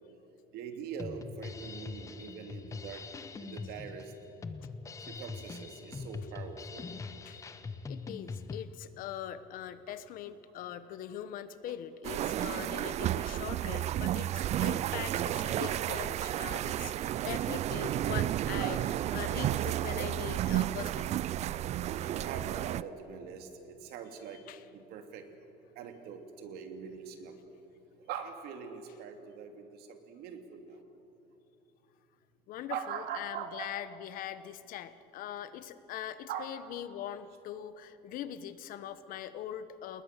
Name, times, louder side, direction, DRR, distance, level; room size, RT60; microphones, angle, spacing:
voice 1, 0.5-3.0 3.4-4.1 5.0-6.9 11.6-11.7 13.1-13.2 18.6-18.8 22.1-25.2 25.8-27.4 28.1-30.8 32.7-33.7 36.3-36.5, right 7 dB, 70° right, 5 dB, 2.7 m, -42 dB
Drum kit, 1.0-8.6, left 4 dB, 20° left, 0.9 m, -42 dB
voice 2, 7.9-18.8 19.1-21.3 22.0-22.1 24.5-24.6 32.5-40.0, left 10 dB, 60° left, 13 dB, 1.1 m, -42 dB
sound 1, 12.0-22.8, right 12 dB, 45° right, 0.4 m, -32 dB
29.5 x 20.0 x 6.7 m, 3.0 s
cardioid pair, 150°, 17 cm